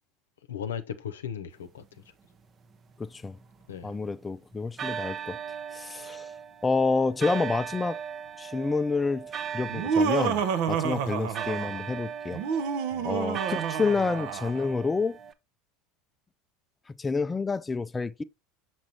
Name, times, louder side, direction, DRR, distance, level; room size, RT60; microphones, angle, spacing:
voice 1, 0.5-2.0 3.7-4.0 10.8-11.0 12.9-13.2, left 8 dB, 85° left, 0.7 m, -37 dB
sound 1, 2.7-4.2 4.8-15.3, right 8 dB, 35° right, 0.7 m, -38 dB
voice 2, 3.0-3.4 3.8-5.4 5.7-6.3 6.6-8.0 8.4-10.4 10.7-12.4 13.0-15.2 17.0-18.2, left 4 dB, 20° left, 0.3 m, -28 dB
Laughter, 9.7-11.8 12.3-14.7, right 6 dB, 65° right, 0.7 m, -29 dB
6.1 x 6.0 x 2.8 m
hypercardioid pair, 80°, 0 cm